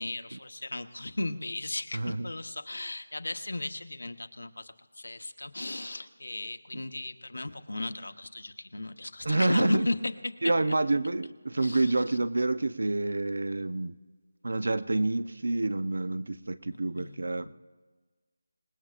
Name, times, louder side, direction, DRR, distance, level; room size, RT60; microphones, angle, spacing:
voice 1, 0.0-10.0 11.6-12.2 16.7-17.5, left 2 dB, 85° left, 8 dB, 1.0 m, -36 dB
voice 2, 1.9-2.3 6.7-6.8 9.2-9.9 10.4-14.0 14.4-17.5, right 2 dB, 60° right, 14 dB, 0.7 m, -28 dB
27.5 x 19.0 x 2.5 m, 1.4 s
figure-of-eight pair, 180°, 0 cm